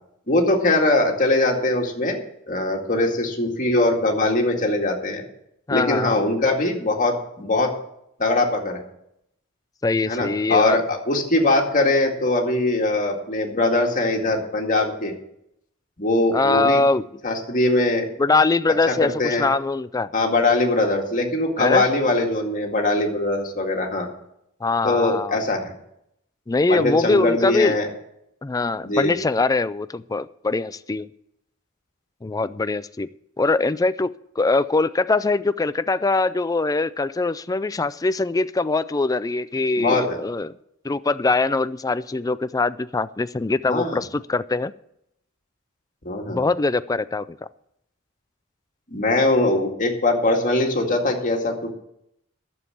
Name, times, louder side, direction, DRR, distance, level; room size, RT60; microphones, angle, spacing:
voice 1, 0.3-2.2 2.5-5.2 5.7-7.7 8.2-8.8 10.1-15.1 16.0-16.8 17.2-18.1 18.9-19.5 20.1-24.1 24.8-25.7 26.7-27.9 28.8-29.1 39.8-40.2 43.6-44.0 46.1-46.4 48.9-51.7, left 2 dB, 40° left, 1 dB, 2.1 m, -21 dB
voice 2, 5.7-6.2 9.8-10.8 16.3-17.0 18.2-20.1 21.6-21.8 24.6-25.4 26.5-27.7 28.4-31.1 32.2-33.1 33.4-34.1 34.4-40.5 40.8-44.7 46.3-47.4, left 3 dB, 15° left, 14 dB, 0.4 m, -22 dB
11.0 x 7.2 x 8.6 m, 0.77 s
head